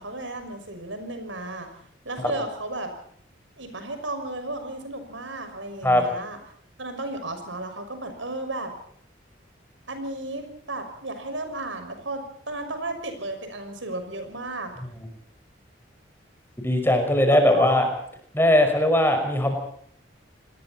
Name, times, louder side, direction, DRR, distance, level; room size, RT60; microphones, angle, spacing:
voice 1, 0.0-1.7 2.0-2.9 3.6-6.4 6.8-8.7 9.9-14.7 17.3-17.9, right 2 dB, 80° right, 7 dB, 6.2 m, -34 dB
voice 2, 16.6-17.9 18.3-19.6, left 1 dB, 10° left, 5 dB, 5.6 m, -19 dB
28.5 x 21.0 x 4.4 m, 0.64 s
head